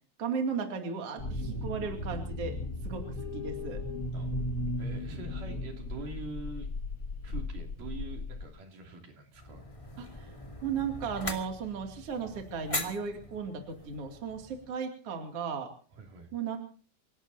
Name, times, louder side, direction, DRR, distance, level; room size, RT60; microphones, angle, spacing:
voice 1, 0.2-2.5 2.8-3.8 10.0-10.3 10.6-15.7 16.3-16.6, right 6 dB, 45° right, 3 dB, 3.2 m, -35 dB
sound 1, 1.2-8.5, left 2 dB, 45° left, 1.1 m, -36 dB
voice 2, 4.8-6.7 7.2-9.7 15.9-16.3, right 3 dB, 60° right, 2 dB, 4.4 m, -44 dB
sound 2, 9.3-14.7, left 1 dB, 15° left, 1.5 m, -41 dB
29.0 x 18.0 x 2.8 m, 0.39 s
omnidirectional pair, 4.3 m